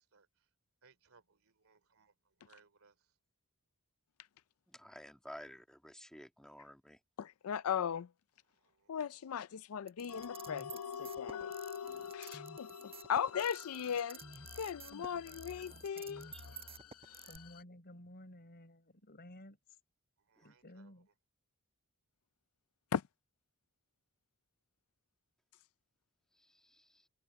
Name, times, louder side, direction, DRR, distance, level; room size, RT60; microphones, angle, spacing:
voice 1, 0.8-2.1 2.4-2.9 8.8-8.9 20.3-20.9, right 5 dB, 65° right, 3.3 m, -66 dB
voice 2, 4.7-7.0 16.3-16.4 26.5-27.0, equal, 5° left, 2.1 m, -53 dB
voice 3, 7.2-8.1 8.9-11.5 12.1-14.2 14.6-16.3 22.9-23.0, left 8 dB, 70° left, 0.4 m, -38 dB
sound 1, 9.9-17.4, right 5 dB, 25° right, 5.4 m, -51 dB
sound 2, 10.1-17.6, left 7 dB, 90° left, 1.0 m, -47 dB
voice 4, 14.9-16.6 17.3-19.6 20.4-21.1, left 1 dB, 45° left, 4.6 m, -56 dB
head